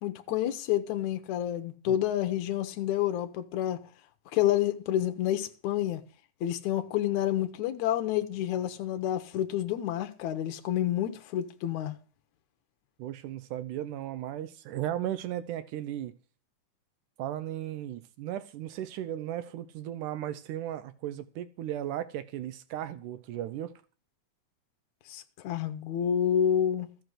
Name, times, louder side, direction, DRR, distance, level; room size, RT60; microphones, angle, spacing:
voice 1, 0.0-3.8 4.3-6.0 6.4-12.0 25.1-26.9, left 11 dB, 75° left, 2.2 m, -29 dB
voice 2, 13.0-16.1 17.2-23.7, right 12 dB, 85° right, 2.3 m, -36 dB
14.5 x 6.0 x 6.5 m
omnidirectional pair, 3.5 m